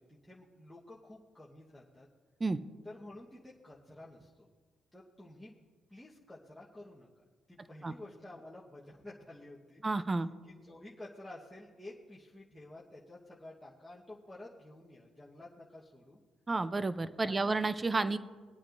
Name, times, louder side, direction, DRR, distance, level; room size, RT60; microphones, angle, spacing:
voice 1, 0.0-2.1 2.8-4.5 4.9-5.6 5.9-7.1 7.5-9.8 10.5-16.2 17.2-17.6, left 1 dB, 5° left, -7 dB, 1.2 m, -51 dB
voice 2, 9.8-10.3 16.5-18.2, right 3 dB, 25° right, 13 dB, 0.5 m, -31 dB
23.0 x 8.6 x 2.6 m, 1.5 s
cardioid pair, 90°, 0 cm